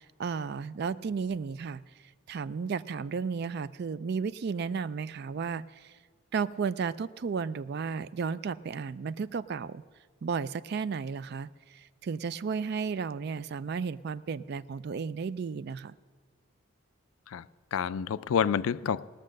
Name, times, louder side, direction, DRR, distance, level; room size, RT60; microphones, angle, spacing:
voice 1, 0.0-1.8 2.3-5.9 6.3-9.8 10.2-15.9, right 5 dB, 50° right, 16 dB, 0.3 m, -33 dB
voice 2, 17.3-19.1, left 7 dB, 75° left, 16 dB, 0.4 m, -29 dB
19.5 x 6.5 x 6.5 m, 1.5 s
head